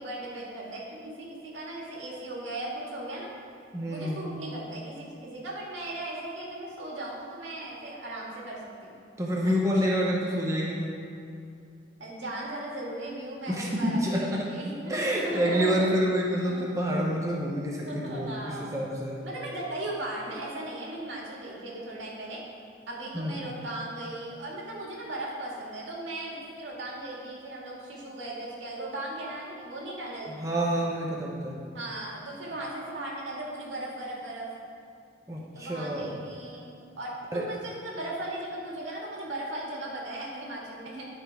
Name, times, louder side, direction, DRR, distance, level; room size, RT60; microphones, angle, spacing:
voice 1, 0.0-3.3 3.9-9.0 9.4-9.6 12.0-15.7 16.4-16.7 17.3-17.5 17.9-18.7 19.2-22.4 22.9-30.3 31.7-34.5 35.5-36.7 37.0-41.1, right 1 dB, 90° right, -4 dB, 2.0 m, -37 dB
voice 2, 3.7-4.2 9.2-11.0 13.5-14.5 14.9-19.2 23.1-23.4 30.4-31.6 35.3-36.1 37.3-37.4, equal, 15° right, -3 dB, 0.9 m, -28 dB
12.0 x 4.4 x 4.7 m, 2.4 s
head